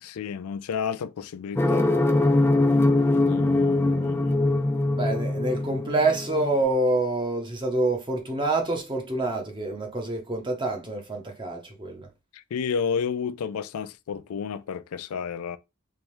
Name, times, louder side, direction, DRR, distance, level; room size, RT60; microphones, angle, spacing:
voice 1, 0.0-1.9 3.3-4.4 12.3-15.6, left 6 dB, 80° left, 0.4 m, -31 dB
sound 1, 1.6-6.6, left 2 dB, 10° left, 0.3 m, -22 dB
voice 2, 5.0-12.1, right 2 dB, 20° right, 0.7 m, -27 dB
3.4 x 3.1 x 3.0 m
head